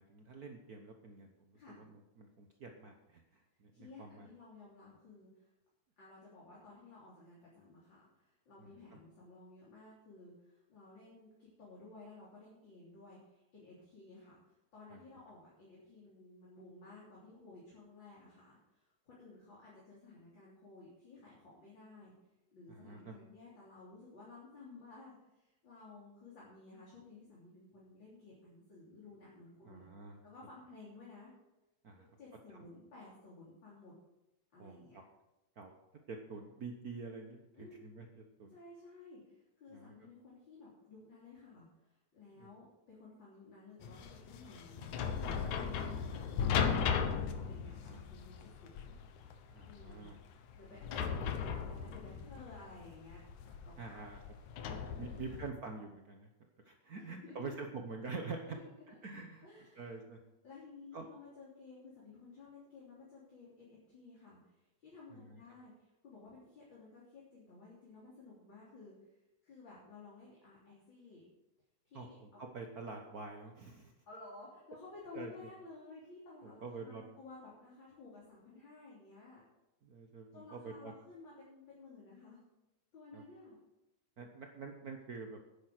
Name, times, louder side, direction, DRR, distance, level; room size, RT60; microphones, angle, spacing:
voice 1, 0.0-4.3 8.6-8.7 14.9-15.0 22.7-23.1 29.6-30.2 31.8-32.1 34.6-35.0 35.6-35.7 36.1-38.5 39.7-39.9 42.4-42.5 45.4-45.5 47.8-48.0 49.5-50.2 53.8-54.2 54.7-56.3 56.6-58.6 59.0-59.5 59.8-60.2 60.9-61.1 65.1-65.4 71.9-73.9 75.1-75.3 76.4-77.0 79.8-80.9 83.1-83.2 84.2-85.4, right 4 dB, 85° right, 3 dB, 0.8 m, -47 dB
voice 2, 1.5-1.8 3.7-5.5 6.0-22.1 22.5-29.8 30.2-31.3 31.9-33.9 34.5-35.0 37.5-37.8 38.5-44.8 45.3-48.8 49.6-50.1 50.5-54.1 54.8-55.2 56.9-57.6 58.4-58.7 59.4-59.9 60.4-68.9 69.4-71.2 71.8-72.4 74.1-79.4 80.3-82.4 82.9-83.6, left 3 dB, 40° left, -6 dB, 3.8 m, -55 dB
sound 1, 43.8-55.5, left 6 dB, 80° left, 2.4 m, -37 dB
10.5 x 10.5 x 6.5 m, 0.96 s
omnidirectional pair, 3.3 m